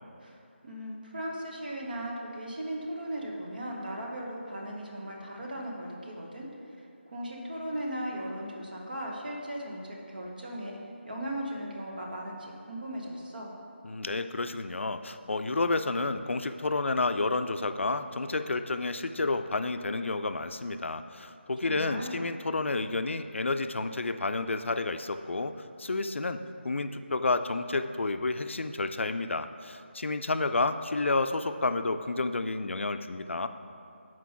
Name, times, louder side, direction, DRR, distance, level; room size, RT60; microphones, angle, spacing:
voice 1, 0.6-10.7 11.0-13.5 21.6-22.3, right 1 dB, 45° right, -2 dB, 1.1 m, -37 dB
voice 2, 13.8-25.5 25.8-33.5, left 3 dB, 80° left, 9 dB, 0.4 m, -30 dB
6.0 x 4.5 x 5.7 m, 2.6 s
figure-of-eight pair, 180°, 6 cm